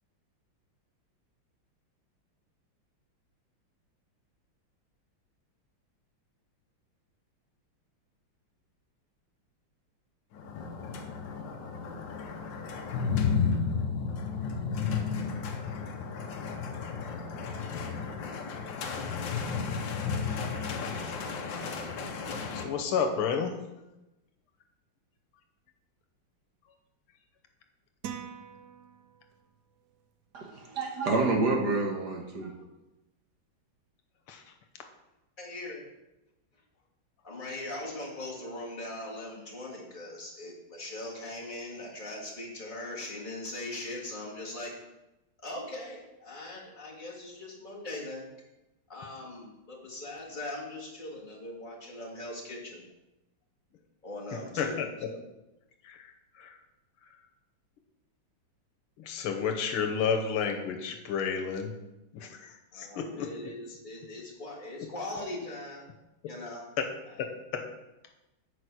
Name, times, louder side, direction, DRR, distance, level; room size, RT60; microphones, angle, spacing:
sound 1, 10.3-22.6, left 5 dB, 65° left, 1.5 m, -33 dB
voice 1, 22.5-23.6 34.3-34.4 54.3-55.1 55.8-56.6 59.0-61.7 62.1-63.3 66.8-66.9 67.2-67.6, left 6 dB, 90° left, 4 dB, 1.9 m, -31 dB
sound 2, 28.0-29.6, right 8 dB, 70° right, 1.0 m, -43 dB
voice 2, 30.3-32.5, right 3 dB, 55° right, 1 dB, 1.6 m, -28 dB
voice 3, 35.4-35.9 37.2-44.7 45.4-48.3 48.9-52.8 54.0-55.2 62.7-65.9 66.3-66.7 67.1-67.3, left 1 dB, 25° left, -4 dB, 2.0 m, -40 dB
8.2 x 4.9 x 6.1 m, 0.98 s
omnidirectional pair, 2.3 m